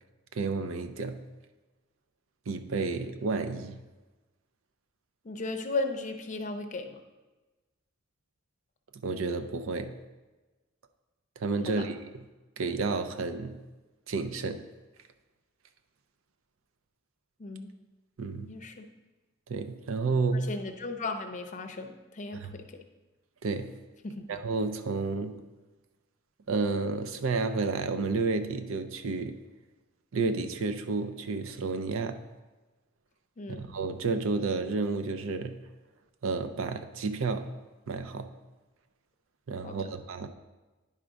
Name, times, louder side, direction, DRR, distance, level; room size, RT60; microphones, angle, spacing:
voice 1, 0.3-1.3 2.5-3.8 8.9-10.0 11.4-12.2 12.6-13.6 14.1-14.7 18.2-18.5 19.5-20.6 22.4-22.5 23.4-23.8 24.3-25.4 26.5-29.4 30.1-32.2 33.6-35.7 36.2-37.5 37.9-38.3 39.5-40.3, right 4 dB, 70° right, 8 dB, 0.5 m, -31 dB
voice 2, 5.2-7.0 17.4-17.7 18.5-18.8 20.3-22.8 24.0-24.2 33.4-33.7 39.6-39.9, left 3 dB, 35° left, 5 dB, 0.6 m, -36 dB
9.9 x 3.7 x 5.0 m, 1.2 s
head